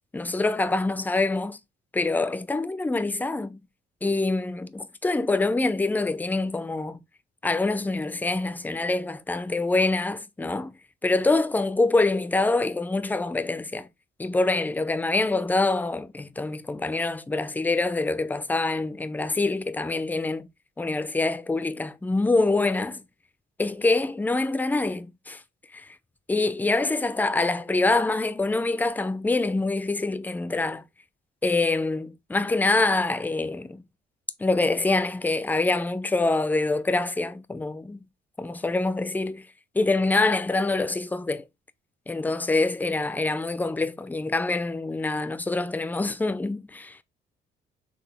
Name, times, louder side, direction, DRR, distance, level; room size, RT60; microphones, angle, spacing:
voice 1, 0.1-1.6 1.9-3.6 4.0-7.0 7.4-10.7 11.0-13.9 14.2-20.5 20.8-23.0 23.6-25.4 25.7-25.8 26.3-30.8 31.4-33.8 34.4-38.0 38.4-39.5 39.7-41.4 42.1-47.0, left 2 dB, 10° left, 0.4 m, -25 dB
4.0 x 3.4 x 3.3 m
cardioid pair, 105°, 19 cm